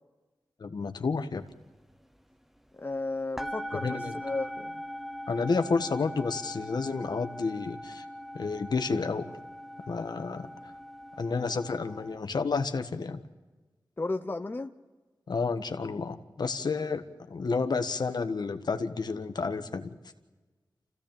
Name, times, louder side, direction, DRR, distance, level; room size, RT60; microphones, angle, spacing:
voice 1, 0.6-1.4 3.7-4.2 5.3-8.0 8.3-9.3 9.9-10.5 11.2-13.2 15.3-19.9, left 4 dB, 65° left, 8 dB, 1.4 m, -30 dB
sound 1, 1.5-1.6 1.9-3.0 3.3-12.2, equal, 5° right, 0.8 m, -41 dB
voice 2, 2.8-4.7 14.0-14.7, left 2 dB, 30° left, 7 dB, 0.9 m, -34 dB
27.0 x 16.0 x 8.9 m, 1.3 s
wide cardioid pair, 80°, 8 cm